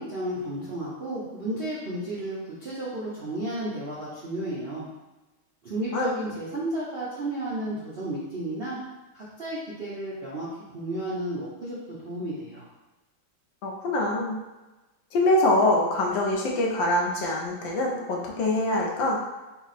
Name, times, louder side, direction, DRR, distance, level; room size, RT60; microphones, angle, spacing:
voice 1, 0.0-4.9 5.6-8.8 9.1-10.5 10.7-12.6, right 1 dB, 70° right, -8 dB, 0.5 m, -33 dB
voice 2, 13.6-14.4 15.1-19.2, left 1 dB, 70° left, -1 dB, 1.4 m, -24 dB
4.4 x 2.1 x 4.0 m, 1.1 s
omnidirectional pair, 2.3 m